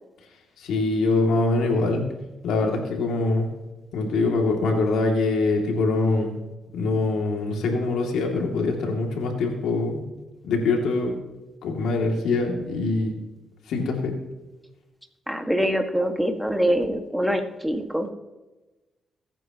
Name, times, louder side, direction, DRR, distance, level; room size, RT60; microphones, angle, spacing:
voice 1, 0.6-2.1 2.4-3.5 3.9-6.3 6.7-10.0 10.4-11.2 11.6-13.1 13.7-14.1, left 3 dB, 80° left, 1 dB, 2.6 m, -23 dB
voice 2, 15.3-18.1, equal, 5° right, 4 dB, 1.8 m, -24 dB
23.5 x 9.0 x 3.0 m, 1.1 s
supercardioid pair, 55°, 0 cm